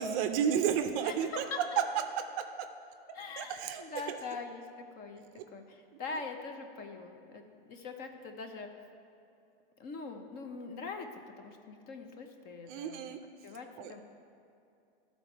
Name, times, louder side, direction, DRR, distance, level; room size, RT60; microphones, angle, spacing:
voice 1, 0.0-1.4 3.4-4.2 5.4-5.5 12.7-13.2 13.8-13.9, right 8 dB, 40° right, 6 dB, 0.5 m, -32 dB
voice 2, 1.0-1.8 3.1-5.2 5.5-8.7 9.8-11.1 11.4-13.1 13.4-14.0, left 4 dB, 30° left, 5 dB, 0.7 m, -43 dB
12.0 x 4.1 x 4.5 m, 2.6 s
supercardioid pair, 140°, 29 cm